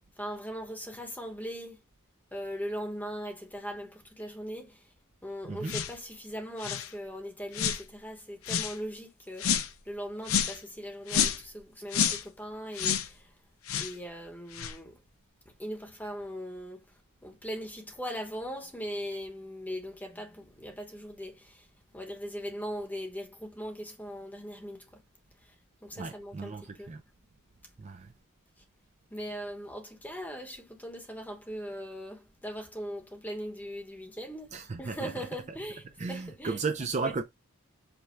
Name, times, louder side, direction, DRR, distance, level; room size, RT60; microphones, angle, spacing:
voice 1, 0.2-1.8 2.3-4.9 5.2-9.5 9.8-13.3 13.8-15.0 15.6-16.8 17.2-21.7 21.9-24.9 25.8-26.9 29.1-36.6 37.0-37.2, equal, 10° left, 1.0 m, -40 dB
sound 1, 5.7-6.0 6.6-6.9 7.5-7.8 8.4-8.8 9.4-9.7 10.3-10.6 11.1-11.5 11.9-12.2 12.7-13.1 13.7-13.9 14.5-14.7, left 8 dB, 70° left, 0.6 m, -29 dB
voice 2, 26.0-27.0 27.8-28.1 34.5-35.6 36.0-37.2, right 4 dB, 30° right, 0.4 m, -35 dB
5.2 x 2.2 x 4.4 m
head